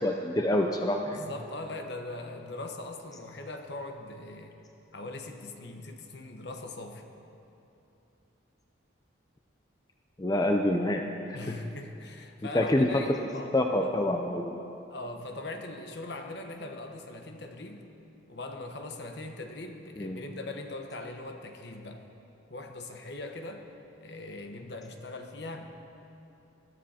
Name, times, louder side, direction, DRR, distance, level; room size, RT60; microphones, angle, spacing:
voice 1, 0.0-1.3 10.2-11.0 11.3-11.6 12.4-13.0 13.5-14.6 20.0-20.2, left 1 dB, 20° left, 3 dB, 0.5 m, -27 dB
voice 2, 1.1-4.6 4.9-7.1 11.3-13.9 14.9-17.8 18.3-22.0 22.5-23.7 24.0-25.7, left 2 dB, 55° left, 4 dB, 1.1 m, -41 dB
21.0 x 12.0 x 4.3 m, 2.8 s
head